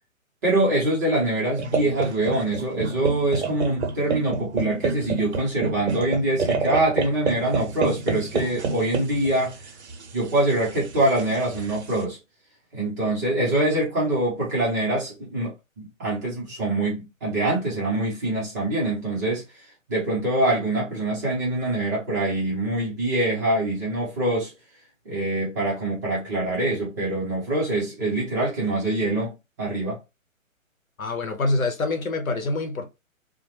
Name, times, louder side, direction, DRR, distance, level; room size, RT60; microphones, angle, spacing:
voice 1, 0.4-9.6 10.1-12.2 12.7-24.5 25.0-30.0, right 1 dB, 15° right, 0.6 m, -24 dB
sound 1, 1.6-12.0, right 4 dB, 55° right, 0.6 m, -29 dB
voice 2, 31.0-32.9, left 2 dB, 80° left, 0.8 m, -26 dB
2.9 x 2.1 x 2.8 m
figure-of-eight pair, 130°, 41 cm